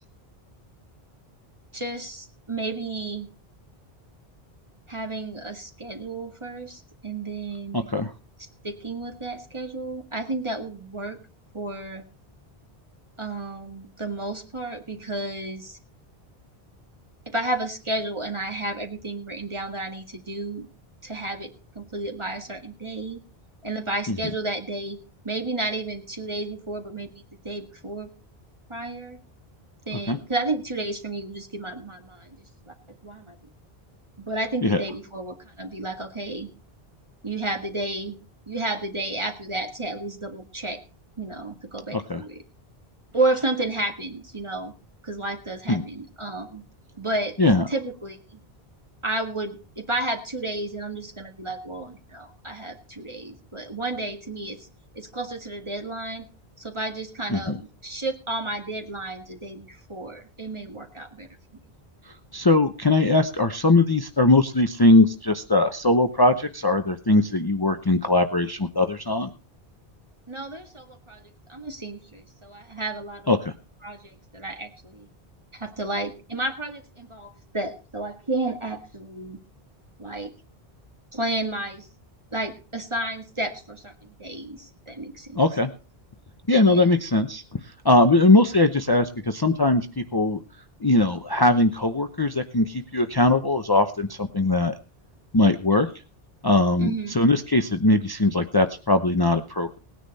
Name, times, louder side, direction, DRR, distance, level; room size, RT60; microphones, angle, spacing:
voice 1, 1.7-3.3 4.9-7.9 8.6-11.2 11.5-12.0 13.2-15.8 17.3-20.7 21.0-23.2 23.6-25.0 25.2-28.1 28.7-29.2 29.9-32.4 32.7-32.8 33.0-33.4 34.2-36.5 37.2-38.2 38.5-40.8 41.2-42.4 43.1-44.7 45.0-46.6 47.0-47.4 47.7-48.4 49.0-54.6 55.0-56.2 56.6-61.3 70.3-71.2 71.5-73.3 73.8-75.1 75.5-79.4 80.0-80.3 81.1-81.9 82.3-85.4 86.6-86.9 96.8-97.1, right 2 dB, 30° right, 4 dB, 2.0 m, -32 dB
voice 2, 7.7-8.1 24.1-24.2 30.1-30.2 34.6-34.8 41.9-42.2 45.7-45.8 47.4-47.6 57.3-57.6 62.3-69.3 73.3-73.5 85.3-85.7 86.5-87.4 87.8-90.4 90.8-94.7 95.3-95.9 96.4-99.8, left 2 dB, 25° left, 7 dB, 0.8 m, -20 dB
18.5 x 9.9 x 4.2 m, 0.34 s
omnidirectional pair, 1.0 m